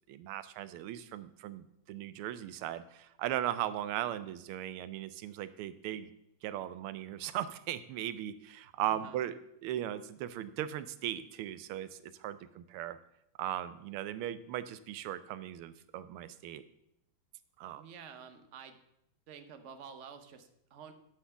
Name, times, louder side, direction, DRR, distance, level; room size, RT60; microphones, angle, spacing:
voice 1, 0.1-6.1 6.4-11.9 12.2-13.0 13.4-16.6 17.6-17.8, right 12 dB, 85° right, 14 dB, 1.5 m, -38 dB
voice 2, 8.9-9.2 17.8-18.8 19.3-20.9, right 7 dB, 50° right, 8 dB, 0.9 m, -50 dB
9.8 x 5.9 x 7.0 m, 0.80 s
omnidirectional pair, 2.3 m